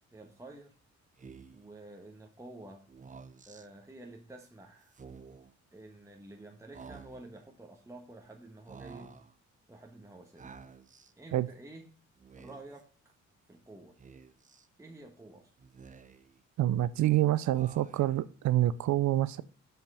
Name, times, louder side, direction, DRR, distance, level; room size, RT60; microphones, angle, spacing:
voice 1, 0.1-0.7 1.5-2.9 3.4-4.9 5.7-9.2 9.7-10.5 11.2-12.0 12.3-13.1 13.5-14.0 14.8-15.5, right 2 dB, 10° right, 1 dB, 1.4 m, -50 dB
Speech, 1.2-1.7 2.9-3.7 4.9-5.5 6.7-7.4 8.7-9.3 10.4-11.1 12.2-12.8 14.0-14.7 15.6-16.4 17.5-18.2, right 5 dB, 25° right, 0.8 m, -51 dB
voice 2, 16.6-19.4, right 14 dB, 70° right, 16 dB, 0.5 m, -27 dB
7.1 x 5.8 x 5.5 m, 0.39 s
cardioid pair, 90°, 30 cm